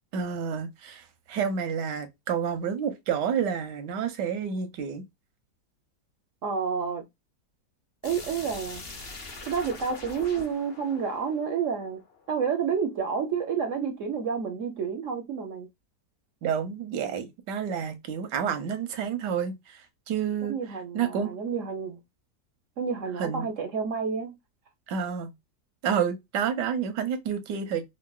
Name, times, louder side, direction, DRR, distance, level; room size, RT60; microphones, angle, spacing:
voice 1, 0.1-5.0 16.4-20.6 20.9-21.3 23.2-23.4 24.9-25.3 25.8-27.8, right 7 dB, 85° right, 1.4 m, -29 dB
voice 2, 6.4-7.1 8.0-8.8 9.4-12.0 12.3-15.7 20.4-22.0 22.8-24.4, right 6 dB, 65° right, 0.7 m, -29 dB
sound 1, 8.0-12.8, left 3 dB, 45° left, 1.0 m, -43 dB
4.6 x 2.1 x 2.2 m
omnidirectional pair, 1.8 m